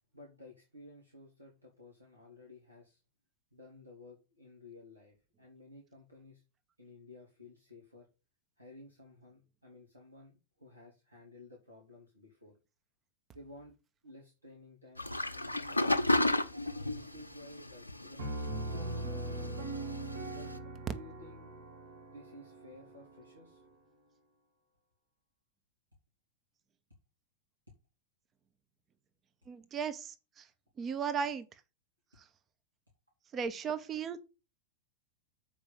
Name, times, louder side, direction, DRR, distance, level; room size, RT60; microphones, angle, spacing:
voice 1, 0.1-3.0 3.5-6.4 6.8-8.1 8.6-12.6 13.3-13.7 14.0-15.8 16.9-19.5 20.3-20.5 20.9-21.6 22.0-23.6, left 2 dB, 85° right, 2.5 m, -54 dB
sound 1, 15.0-20.6, left 1 dB, 85° left, 0.8 m, -34 dB
Piano, 18.2-23.7, right 2 dB, 55° right, 2.3 m, -41 dB
voice 2, 29.5-30.4 30.8-31.5 33.3-34.2, right 6 dB, 25° right, 0.9 m, -36 dB
7.2 x 5.1 x 7.3 m
figure-of-eight pair, 90°, 0 cm